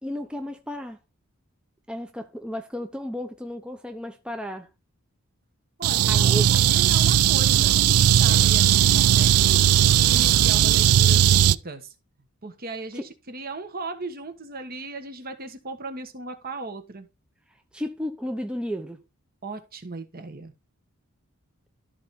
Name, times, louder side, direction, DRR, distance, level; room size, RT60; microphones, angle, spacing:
voice 1, 0.0-1.0 1.9-4.7 6.1-6.5 17.7-19.0, equal, 5° right, 0.7 m, -33 dB
voice 2, 5.8-9.6 9.9-11.9 12.4-17.1 19.4-20.5, right 3 dB, 45° right, 1.3 m, -37 dB
sound 1, 5.8-11.6, right 10 dB, 90° right, 0.4 m, -18 dB
13.0 x 4.7 x 4.2 m
head